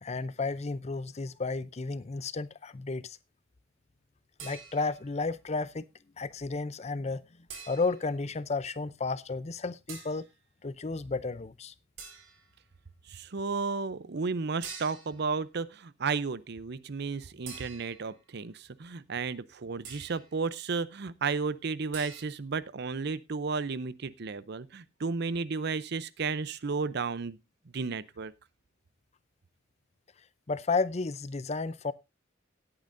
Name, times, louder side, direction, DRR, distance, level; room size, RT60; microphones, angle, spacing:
voice 1, 0.0-3.2 4.4-5.8 6.2-7.2 7.7-10.3 10.6-11.7 30.5-31.9, left 3 dB, 35° left, 0.5 m, -32 dB
sound 1, 4.4-5.1 7.5-8.1 9.9-10.3 12.0-12.5 14.6-15.3 17.5-18.2 19.8-20.3 21.9-22.2, right 6 dB, 70° right, 4.6 m, -45 dB
voice 2, 13.1-27.4 27.7-28.3, right 4 dB, 55° right, 0.6 m, -33 dB
18.0 x 8.8 x 2.6 m
head